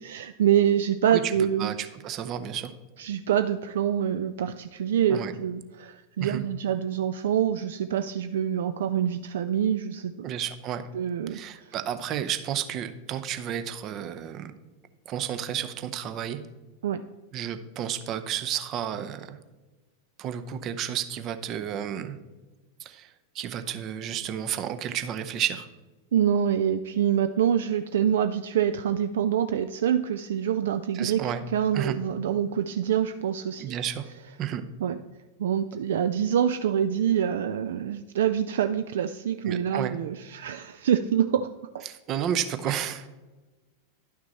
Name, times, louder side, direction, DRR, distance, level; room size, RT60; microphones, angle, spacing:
voice 1, 0.0-1.7 3.0-10.3 10.9-11.7 16.8-17.0 26.1-31.2 31.5-33.7 34.8-35.0 35.4-41.8 42.7-42.8, right 9 dB, 60° right, 10 dB, 0.3 m, -26 dB
voice 2, 1.1-2.7 5.1-5.3 6.2-6.4 10.2-10.8 11.3-14.5 15.1-16.4 17.3-19.4 20.2-22.2 22.8-25.7 30.9-31.4 31.7-32.0 33.6-34.1 34.4-34.6 39.5-40.0 41.9-43.1, right 9 dB, 35° right, 10 dB, 0.7 m, -32 dB
11.5 x 6.0 x 4.2 m, 1.2 s
figure-of-eight pair, 90°, 0 cm